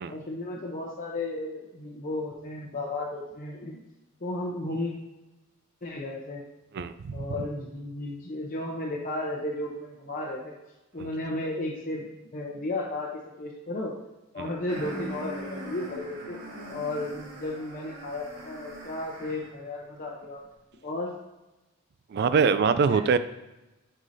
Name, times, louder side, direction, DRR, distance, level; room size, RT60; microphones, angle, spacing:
voice 1, 0.1-3.8 4.2-4.9 5.8-6.4 7.1-10.6 10.9-12.1 12.3-13.9 14.3-16.4 16.7-20.4 20.8-21.1 22.9-23.0, left 2 dB, 40° left, -2 dB, 0.7 m, -34 dB
voice 2, 6.7-7.2 14.4-14.5 22.1-23.2, right 5 dB, 50° right, 13 dB, 0.3 m, -23 dB
sound 1, 14.7-19.6, right 1 dB, 75° right, 1.8 m, -41 dB
8.1 x 5.5 x 2.7 m, 1.0 s
head